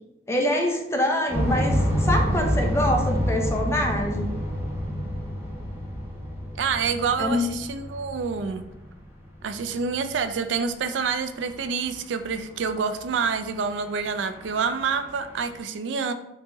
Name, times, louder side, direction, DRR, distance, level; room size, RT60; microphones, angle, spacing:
voice 1, 0.3-4.3 7.2-7.5, left 1 dB, 15° left, 2 dB, 0.7 m, -25 dB
sound 1, 1.3-9.1 9.3-9.4 10.0-10.1 11.6-11.7 11.9-12.0 12.3-12.4 12.6-12.7 13.1-13.5 13.9-15.6, equal, 10° right, 0.9 m, -28 dB
voice 2, 6.6-8.7 9.4-16.1, right 5 dB, 90° right, 10 dB, 0.4 m, -27 dB
4.4 x 2.9 x 3.9 m, 0.89 s
head